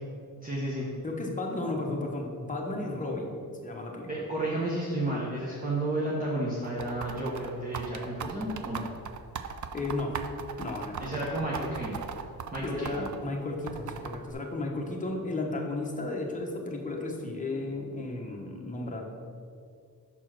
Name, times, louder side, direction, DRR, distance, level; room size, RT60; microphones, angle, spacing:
voice 1, 0.4-0.9 4.1-8.9 11.0-12.0 12.5-13.1, right 1 dB, 25° right, -6 dB, 1.1 m, -32 dB
voice 2, 1.0-4.2 9.7-10.1 10.6-11.2 12.6-19.0, left 2 dB, 20° left, 0 dB, 1.1 m, -34 dB
sound 1, 6.6-13.2 13.7-14.3, right 7 dB, 55° right, 0.5 m, -38 dB
5.8 x 4.4 x 6.1 m, 2.3 s
wide cardioid pair, 120°, 36 cm